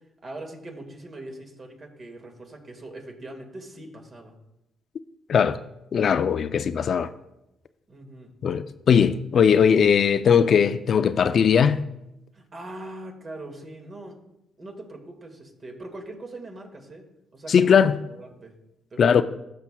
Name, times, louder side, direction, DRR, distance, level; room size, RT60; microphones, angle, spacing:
voice 1, 0.2-4.3 7.9-8.3 12.3-14.1 14.6-17.0 17.3-18.5 18.9-19.2, right 2 dB, 40° right, 1.8 m, -41 dB
voice 2, 5.9-7.1 8.4-11.8 17.5-17.9 19.0-19.2, left 7 dB, 55° left, 0.3 m, -19 dB
14.5 x 5.6 x 2.2 m
cardioid pair, 90°, 0 cm